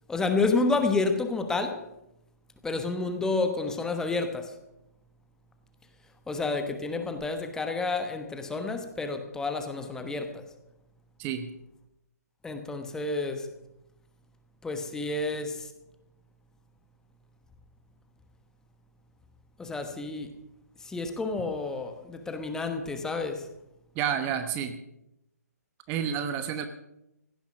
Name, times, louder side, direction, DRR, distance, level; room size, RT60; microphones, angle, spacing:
voice 1, 0.1-1.8 2.6-4.5 6.3-10.4 12.4-13.5 14.6-15.6 19.6-20.3 20.8-23.5, left 3 dB, 5° left, 6 dB, 1.2 m, -29 dB
voice 2, 23.9-24.7 25.9-26.7, right 8 dB, 25° right, 9 dB, 1.0 m, -29 dB
16.0 x 10.5 x 6.1 m, 0.86 s
figure-of-eight pair, 140°, 9 cm